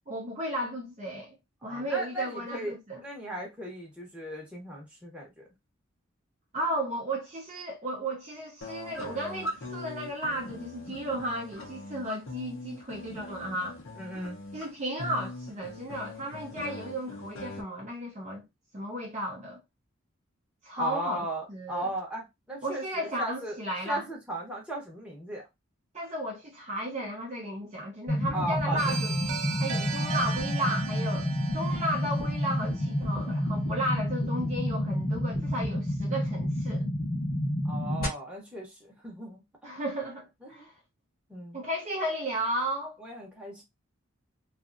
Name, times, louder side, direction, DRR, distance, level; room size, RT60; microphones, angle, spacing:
voice 1, 0.1-1.4 1.6-3.0 6.5-13.8 14.5-18.4 18.7-19.6 20.6-21.9 22.6-24.0 25.9-29.1 29.6-36.9 39.6-40.7 41.5-42.9, right 1 dB, 35° right, 0.6 m, -34 dB
voice 2, 1.6-5.4 14.0-14.4 20.8-23.6 23.8-25.4 28.3-29.0 37.6-39.4 40.4-40.7 41.3-41.6 43.0-43.6, right 1 dB, 5° right, 0.9 m, -36 dB
Pinko's Gum, 8.6-17.6, left 1 dB, 70° left, 0.7 m, -41 dB
sound 1, 28.1-38.1, left 1 dB, 45° left, 1.0 m, -29 dB
sound 2, 28.8-33.5, right 6 dB, 85° right, 0.7 m, -38 dB
2.6 x 2.4 x 2.4 m
head